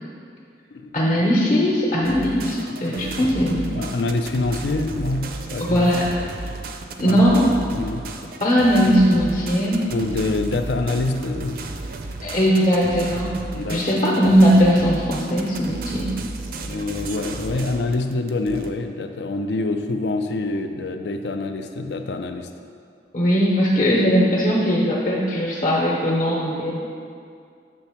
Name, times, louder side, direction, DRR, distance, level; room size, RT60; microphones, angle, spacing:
voice 1, 0.9-3.7 5.6-6.0 7.0-7.5 8.4-9.9 12.2-13.3 13.7-16.1 23.1-26.7, equal, 45° left, -4 dB, 0.8 m, -19 dB
sound 1, 2.0-18.7, right 3 dB, 55° right, 0.5 m, -33 dB
voice 2, 2.7-6.0 7.1-7.2 7.7-8.1 9.9-11.7 13.5-14.0 16.6-22.5, left 2 dB, 70° left, 7 dB, 0.4 m, -26 dB
6.9 x 3.4 x 5.8 m, 2.3 s
head